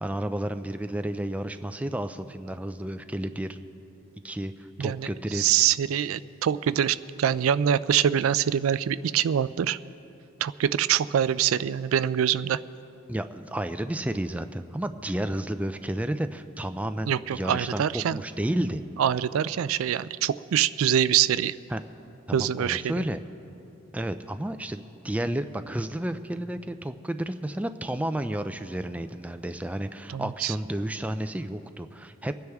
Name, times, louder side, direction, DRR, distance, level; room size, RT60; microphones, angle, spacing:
voice 1, 0.0-3.6 4.2-5.7 13.1-18.8 21.7-21.8 22.3-23.2 23.9-32.3, right 1 dB, 5° right, 9 dB, 0.3 m, -31 dB
voice 2, 4.8-9.8 10.4-12.6 17.1-18.2 19.0-21.6 22.3-23.0 30.1-30.5, right 9 dB, 85° right, 16 dB, 0.3 m, -24 dB
25.0 x 9.6 x 3.5 m, 2.9 s
head